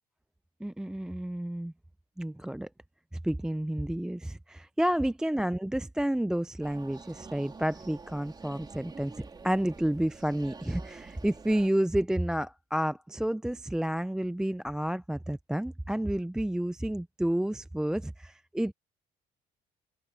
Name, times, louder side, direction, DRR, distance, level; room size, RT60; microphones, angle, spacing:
voice 1, 0.6-1.7 2.2-2.7 3.1-18.7, right 1 dB, 5° right, 0.4 m, -30 dB
sound 1, 6.6-11.7, right 4 dB, 25° right, 2.7 m, -47 dB
cardioid pair, 110°, 17 cm